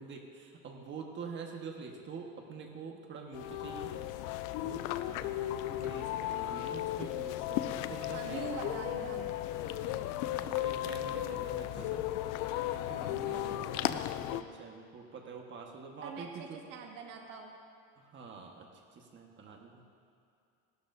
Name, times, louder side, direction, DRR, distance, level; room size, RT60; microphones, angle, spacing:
voice 1, 0.0-3.9 4.6-4.9 5.7-8.5 9.6-12.1 12.7-16.6 18.0-18.7 18.9-19.8, right 5 dB, 35° right, 1 dB, 1.5 m, -46 dB
sound 1, 3.3-14.4, left 13 dB, 70° left, 0.5 m, -35 dB
voice 2, 5.1-5.4 8.1-9.4 11.2-11.5 13.2-13.6 16.0-17.6, right 5 dB, 70° right, 0 dB, 1.9 m, -44 dB
16.5 x 12.5 x 2.7 m, 2.5 s
cardioid pair, 145°, 33 cm